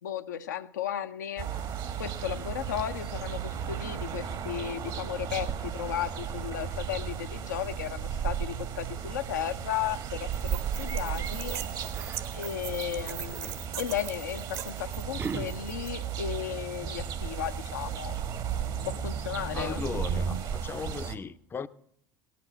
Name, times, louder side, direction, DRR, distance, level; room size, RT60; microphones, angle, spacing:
voice 1, 0.0-1.5 2.0-11.6 12.3-18.2 18.9-19.9, left 10 dB, 80° left, 0.6 m, -35 dB
sound 1, 1.4-21.2, right 8 dB, 45° right, 1.1 m, -35 dB
sound 2, 10.3-15.9, right 10 dB, 65° right, 1.4 m, -41 dB
Yell, 11.3-16.8, right 5 dB, 25° right, 0.5 m, -44 dB
voice 2, 19.5-21.7, left 5 dB, 25° left, 0.5 m, -37 dB
17.5 x 6.0 x 7.9 m
figure-of-eight pair, 70°, 9 cm